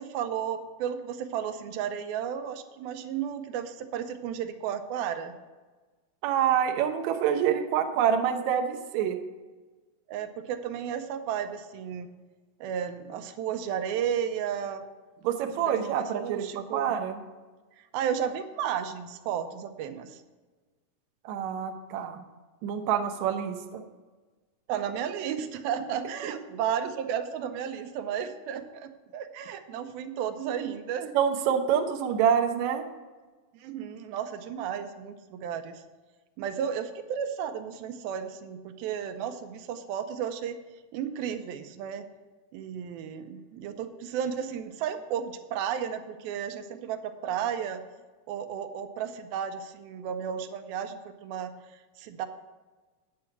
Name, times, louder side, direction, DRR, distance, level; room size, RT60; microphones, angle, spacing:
voice 1, 0.0-5.4 10.1-12.1 12.6-14.8 15.7-16.9 17.9-20.2 24.7-31.1 33.5-35.8 36.4-40.6 40.9-42.0 42.5-47.8 48.3-51.5 52.0-52.3, right 8 dB, 90° right, 8 dB, 2.6 m, -33 dB
voice 2, 6.2-9.2 15.2-17.2 21.2-22.2 22.6-23.8 26.2-26.3 31.1-32.8, right 8 dB, 70° right, 5 dB, 1.8 m, -26 dB
9.5 x 7.7 x 5.8 m, 1.3 s
omnidirectional pair, 4.2 m